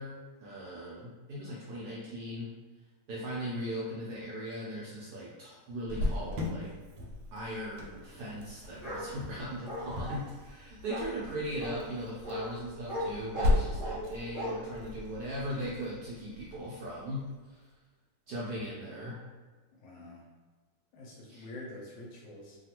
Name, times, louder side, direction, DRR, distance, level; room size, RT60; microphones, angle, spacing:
voice 1, 0.0-2.5 3.1-6.7 7.3-17.2 17.5-17.6 18.3-19.2 21.3-21.5, equal, 70° right, -7 dB, 1.0 m, -39 dB
Cricket, 5.9-17.3, left 2 dB, 90° right, 1.5 m, -37 dB
Bark, 8.8-9.1 9.7-10.2 10.9-11.1 11.6-11.8 12.2-12.4 12.9-13.1 13.3-14.0 14.3-14.5, equal, 30° left, 1.4 m, -36 dB
voice 2, 19.8-20.2 20.9-22.6, left 1 dB, 70° left, -3 dB, 1.2 m, -46 dB
3.2 x 2.3 x 2.8 m, 1.3 s
omnidirectional pair, 2.3 m